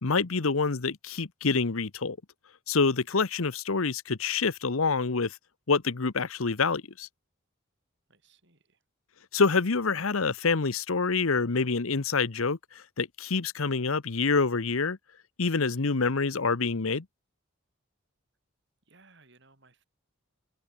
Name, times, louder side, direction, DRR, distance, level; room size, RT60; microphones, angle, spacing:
voice 1, 0.0-2.2 2.7-5.4 5.7-7.1 9.3-15.0 15.4-17.1, left 4 dB, 80° left, 1.0 m, -27 dB
voice 2, 8.1-8.8 18.9-19.9, right 3 dB, 55° right, 7.1 m, -61 dB
head